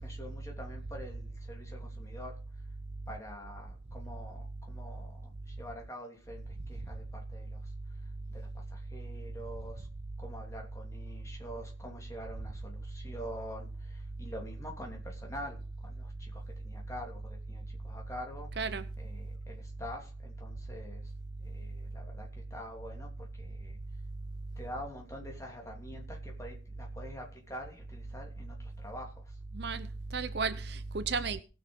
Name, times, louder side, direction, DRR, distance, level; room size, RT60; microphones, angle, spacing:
voice 1, 0.0-2.4 3.1-7.7 8.3-9.9 10.2-18.5 19.0-21.1 21.4-23.8 24.6-29.4, equal, 15° left, 2.9 m, -46 dB
voice 2, 18.6-18.9 29.5-31.4, right 4 dB, 55° right, 0.8 m, -34 dB
18.0 x 6.5 x 5.3 m
head